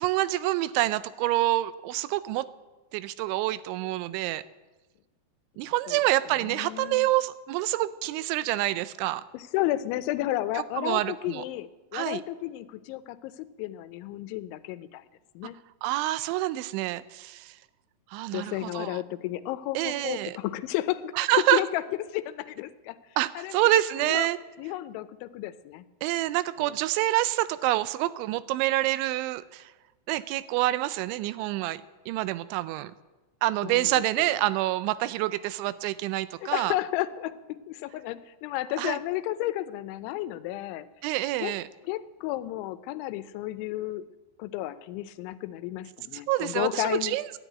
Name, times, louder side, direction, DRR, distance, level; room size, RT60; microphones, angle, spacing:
voice 1, 0.0-2.5 2.9-4.4 5.6-9.2 10.8-11.4 11.9-12.2 15.8-17.5 18.1-19.0 19.8-20.3 21.2-21.6 23.2-24.4 26.0-29.7 30.1-31.8 32.1-32.9 33.4-36.7 38.8-39.0 41.0-41.7 46.3-47.2, right 16 dB, 90° right, 16 dB, 3.0 m, -27 dB
voice 2, 5.6-6.0 6.4-7.1 9.3-15.1 15.4-15.6 18.3-21.8 22.1-23.0 23.4-23.7 24.0-24.3 24.6-25.9 26.6-26.8 33.6-34.4 36.4-40.9 41.4-41.5 41.8-44.0 44.4-47.2, left 15 dB, 90° left, 13 dB, 3.1 m, -32 dB
13.5 x 11.0 x 9.2 m, 1.2 s
omnidirectional pair, 5.3 m